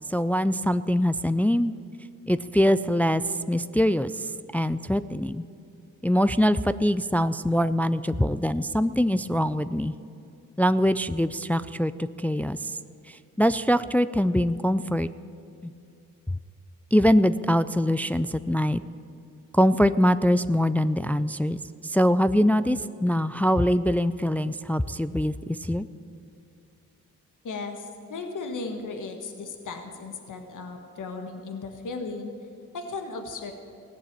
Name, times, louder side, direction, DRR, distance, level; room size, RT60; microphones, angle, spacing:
voice 1, 0.1-1.7 2.3-5.4 6.0-9.9 10.6-12.8 13.1-15.1 15.6-15.7 16.9-18.8 19.5-21.6 21.8-25.9, equal, 5° left, 14 dB, 0.3 m, -23 dB
voice 2, 27.4-32.3 32.7-33.5, left 3 dB, 60° left, 5 dB, 1.6 m, -36 dB
16.0 x 7.0 x 9.0 m, 2.6 s
cardioid pair, 65°, 34 cm